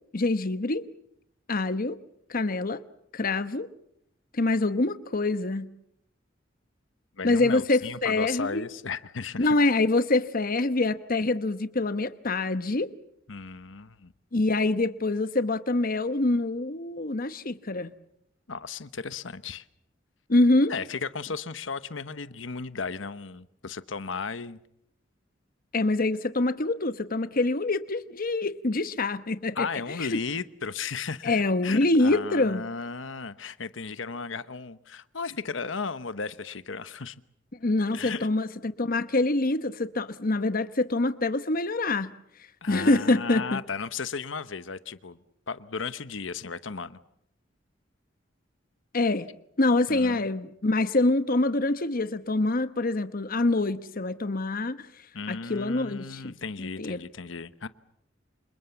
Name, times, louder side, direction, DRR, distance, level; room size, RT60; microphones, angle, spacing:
voice 1, 0.1-0.9 1.5-2.0 2.3-2.8 3.1-3.7 4.3-5.7 7.2-8.7 9.4-12.9 14.3-17.9 20.3-20.7 25.7-29.7 30.0-30.2 31.2-32.6 37.6-42.1 42.7-43.6 48.9-49.3 49.6-54.9 55.3-57.0, left 2 dB, 50° left, 1.0 m, -25 dB
voice 2, 7.2-9.5 13.3-14.1 18.5-19.6 20.7-24.6 29.5-37.2 37.9-38.3 42.6-45.2 45.5-47.0 49.9-50.3 55.1-57.7, left 5 dB, 90° left, 1.0 m, -35 dB
28.5 x 27.5 x 7.2 m
head